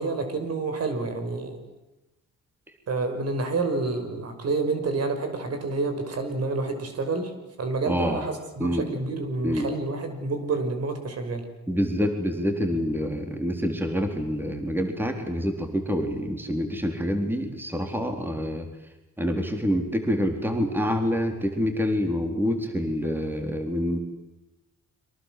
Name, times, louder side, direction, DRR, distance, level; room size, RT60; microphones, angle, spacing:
voice 1, 0.0-1.6 2.9-7.3 7.6-11.4, right 3 dB, 55° right, 7 dB, 5.9 m, -28 dB
voice 2, 7.9-8.2 8.6-8.9 9.4-9.7 11.7-18.7 19.2-24.0, equal, 5° right, 4 dB, 4.2 m, -27 dB
30.0 x 24.0 x 7.9 m, 0.99 s
cardioid pair, 90°, 30 cm